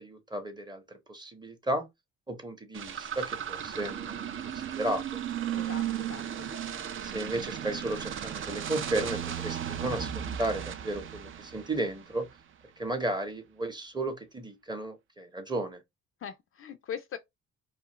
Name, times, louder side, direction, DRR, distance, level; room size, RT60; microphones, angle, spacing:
voice 1, 0.0-1.9 2.3-5.2 7.0-12.3 12.8-15.8, right 1 dB, 15° right, 0.7 m, -34 dB
sound 1, 2.7-12.3, right 10 dB, 45° right, 0.4 m, -35 dB
voice 2, 5.5-6.6 16.2-17.2, left 8 dB, 45° left, 0.4 m, -41 dB
2.4 x 2.4 x 2.8 m
cardioid pair, 90°, 30 cm